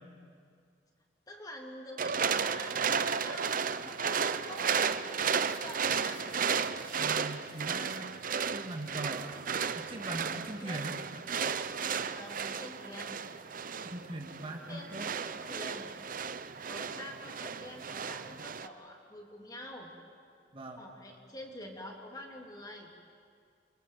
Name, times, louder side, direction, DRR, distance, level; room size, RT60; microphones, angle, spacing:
voice 1, 1.3-6.4 10.6-10.8 11.3-13.2 14.7-15.9 16.7-19.9 20.8-22.9, left 1 dB, 20° left, 0 dB, 3.4 m, -47 dB
sound 1, 2.0-18.7, right 6 dB, 50° right, 0.8 m, -34 dB
voice 2, 6.9-8.1 8.5-9.4 9.7-11.0 13.8-15.1 20.5-20.8, right 1 dB, 30° right, 1 dB, 2.2 m, -41 dB
28.5 x 24.5 x 7.7 m, 2.3 s
head